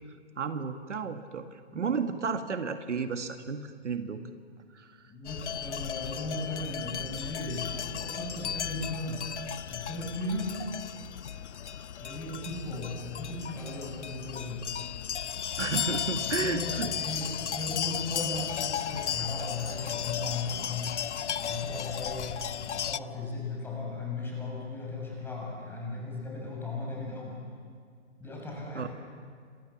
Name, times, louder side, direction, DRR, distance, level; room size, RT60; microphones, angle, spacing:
voice 1, 0.4-4.2 4.7-5.0 15.6-16.9 28.7-28.9, right 5 dB, 75° right, 7 dB, 2.0 m, -32 dB
voice 2, 5.1-9.3 9.7-10.6 12.0-14.6 16.3-21.0 21.4-22.4 22.7-27.4 28.2-28.9, left 2 dB, 5° left, -2 dB, 7.6 m, -37 dB
sound 1, 5.2-23.0, left 9 dB, 70° left, 0.8 m, -35 dB
30.0 x 26.0 x 7.3 m, 2.1 s
hypercardioid pair, 140°, 36 cm